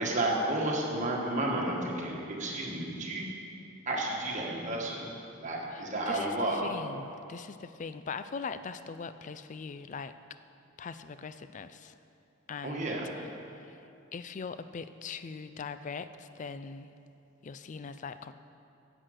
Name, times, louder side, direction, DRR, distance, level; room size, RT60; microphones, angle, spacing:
voice 1, 0.0-3.3 3.8-5.1 5.4-6.6 12.6-13.1, right 1 dB, 35° right, -2 dB, 1.5 m, -31 dB
voice 2, 5.7-10.1 10.8-11.9 12.5-13.0 13.5-13.8 14.1-16.9 17.4-18.3, left 5 dB, 35° left, 12 dB, 0.3 m, -41 dB
10.0 x 8.1 x 6.4 m, 2.7 s
head